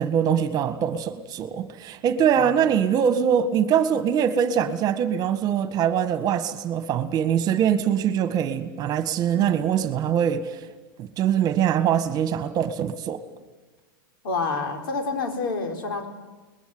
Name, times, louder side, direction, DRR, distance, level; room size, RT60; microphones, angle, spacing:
voice 1, 0.0-10.6 11.0-13.2, right 8 dB, 35° right, 11 dB, 1.7 m, -23 dB
voice 2, 2.3-2.7 9.3-9.6 14.2-16.1, left 3 dB, 75° left, 5 dB, 4.8 m, -29 dB
29.5 x 21.0 x 8.0 m, 1.3 s
hypercardioid pair, 125°, 12 cm